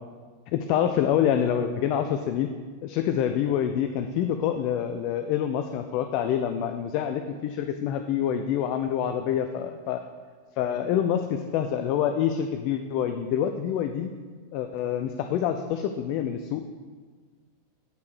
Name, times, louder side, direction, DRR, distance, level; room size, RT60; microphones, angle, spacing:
voice 1, 0.5-2.5 2.8-10.0 10.6-14.1 14.5-16.7, left 9 dB, 45° left, 8 dB, 0.4 m, -26 dB
9.5 x 4.7 x 6.2 m, 1.5 s
figure-of-eight pair, 90°, 0 cm